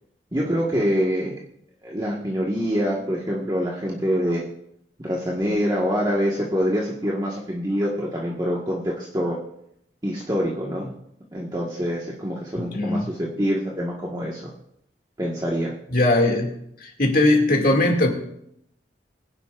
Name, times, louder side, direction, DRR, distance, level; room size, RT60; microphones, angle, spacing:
voice 1, 0.3-1.3 1.8-4.4 5.0-9.4 10.0-10.9 11.3-14.5 15.2-15.7, equal, 25° right, -4 dB, 1.6 m, -25 dB
voice 2, 12.6-13.1 15.9-16.5 16.8-18.1, left 2 dB, 50° left, 1 dB, 2.4 m, -20 dB
22.0 x 10.5 x 2.5 m, 0.75 s
head